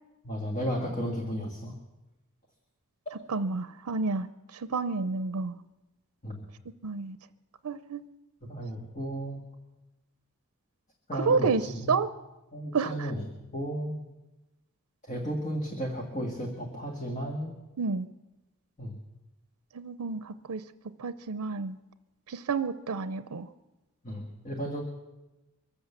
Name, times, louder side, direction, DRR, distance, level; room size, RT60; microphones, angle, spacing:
voice 1, 0.2-1.7 6.2-6.4 8.4-9.4 11.1-11.9 12.5-13.2 13.5-14.0 15.1-17.5 18.8-19.0 24.0-24.8, equal, 35° left, 0 dB, 1.8 m, -34 dB
voice 2, 3.3-4.3 4.7-5.5 6.8-7.2 7.6-8.0 11.1-12.1 12.7-13.1 17.8-18.1 19.7-20.6 21.0-21.8 22.3-23.5, right 4 dB, 85° right, 12 dB, 0.6 m, -29 dB
24.0 x 8.0 x 6.9 m, 1.0 s
head